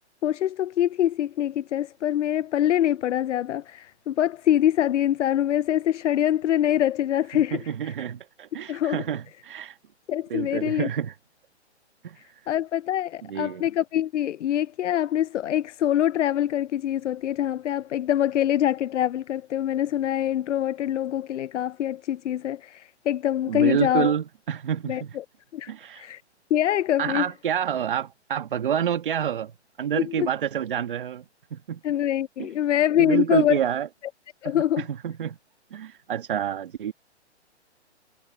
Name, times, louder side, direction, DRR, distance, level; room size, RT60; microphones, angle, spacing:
voice 1, 0.2-7.9 8.7-9.0 10.1-10.9 12.5-24.2 24.9-25.2 25.5-26.2 26.5-27.3 30.0-30.3 31.8-33.6 34.4-34.8, left 11 dB, 85° left, 0.5 m, -24 dB
voice 2, 7.5-9.8 10.3-11.1 12.0-12.2 13.3-13.6 23.5-25.2 25.7-26.1 27.0-29.5 29.8-31.2 31.5-31.8 32.4-32.5 33.0-33.9 34.4-35.4 35.7-36.9, right 9 dB, 50° right, 1.6 m, -28 dB
hypercardioid pair, 170°, 35 cm